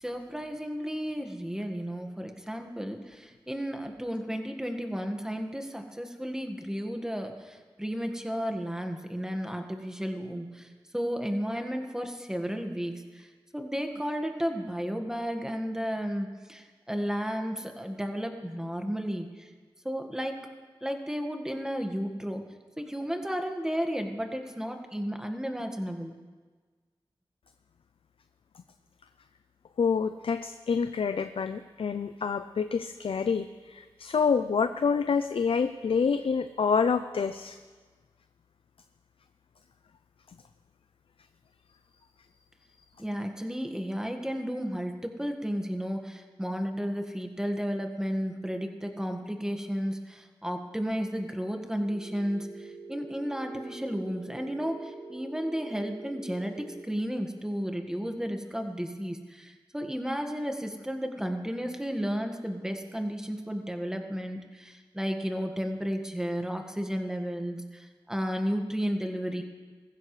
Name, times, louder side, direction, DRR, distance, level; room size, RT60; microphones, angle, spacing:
voice 1, 0.0-10.7 10.9-13.3 13.5-19.5 19.8-20.4 20.8-22.4 22.8-26.2 43.0-69.4, equal, 5° right, 4 dB, 1.6 m, -33 dB
voice 2, 29.8-37.6, left 5 dB, 75° left, 10 dB, 0.5 m, -27 dB
Telephone, 51.8-56.8, right 3 dB, 70° right, 5.6 m, -45 dB
20.0 x 15.5 x 3.2 m, 1.4 s
cardioid pair, 55°, 9 cm